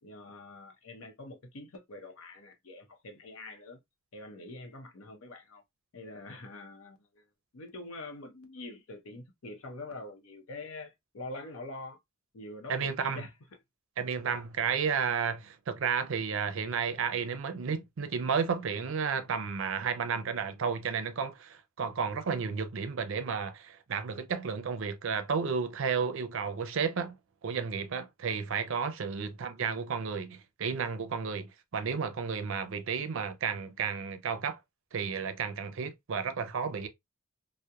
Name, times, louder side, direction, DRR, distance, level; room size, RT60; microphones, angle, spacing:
voice 1, 0.0-3.8 4.1-5.6 5.9-7.2 7.5-12.0 12.3-13.3 14.2-14.4, left 2 dB, 90° left, 0.7 m, -45 dB
voice 2, 12.7-13.2 14.0-27.2 27.4-34.6 34.9-36.9, right 6 dB, 65° right, 0.5 m, -32 dB
2.8 x 2.0 x 2.3 m
head